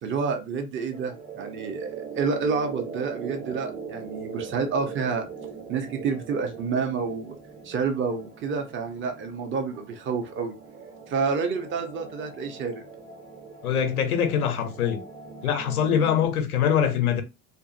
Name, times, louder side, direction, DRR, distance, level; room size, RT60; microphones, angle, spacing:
voice 1, 0.0-5.2 5.7-7.4 7.6-10.5 11.1-12.8 15.4-15.6, right 5 dB, 30° right, 0.7 m, -29 dB
sound 1, 0.9-16.3, right 5 dB, 45° right, 1.4 m, -41 dB
voice 2, 13.6-15.0 15.4-17.2, left 8 dB, 85° left, 0.7 m, -23 dB
2.5 x 2.5 x 2.5 m
hypercardioid pair, 70°, 43 cm